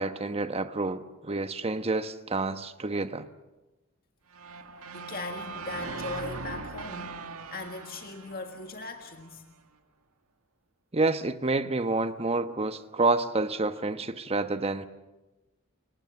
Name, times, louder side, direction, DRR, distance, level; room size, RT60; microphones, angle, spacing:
voice 1, 0.0-3.3 10.9-14.9, right 3 dB, 30° right, 1.1 m, -28 dB
sound 1, 4.3-9.4, right 4 dB, 80° right, 1.8 m, -40 dB
voice 2, 4.6-9.4, left 3 dB, 45° left, 1.7 m, -40 dB
29.0 x 22.5 x 7.1 m
head